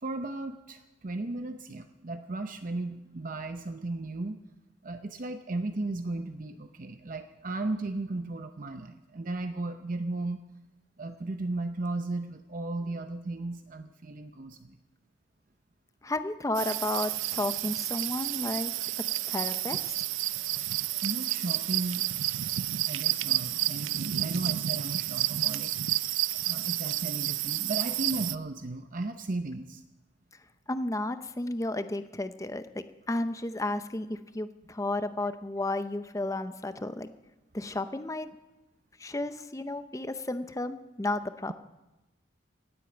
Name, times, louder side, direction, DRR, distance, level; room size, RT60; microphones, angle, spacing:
voice 1, 0.0-4.4 4.8-10.4 11.0-14.8 21.0-22.1 22.9-25.9 26.4-29.8, right 2 dB, 45° right, 7 dB, 0.7 m, -35 dB
voice 2, 16.0-18.7 19.3-19.9 30.7-37.1 37.5-38.3 39.0-41.5, left 2 dB, 15° left, 11 dB, 0.6 m, -33 dB
sound 1, 16.5-28.4, right 14 dB, 85° right, 0.5 m, -30 dB
17.0 x 8.4 x 9.0 m, 1.0 s
head